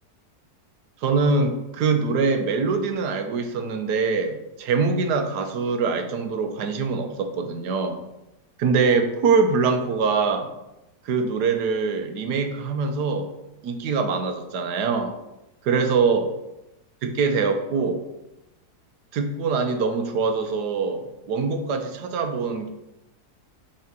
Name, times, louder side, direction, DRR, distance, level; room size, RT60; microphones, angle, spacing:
voice 1, 1.0-8.0 8.6-10.5 11.0-13.3 13.6-15.1 15.6-16.3 17.0-18.0 19.1-22.7, right 4 dB, 80° right, 6 dB, 1.4 m, -23 dB
5.7 x 3.8 x 6.0 m, 0.92 s
omnidirectional pair, 1.7 m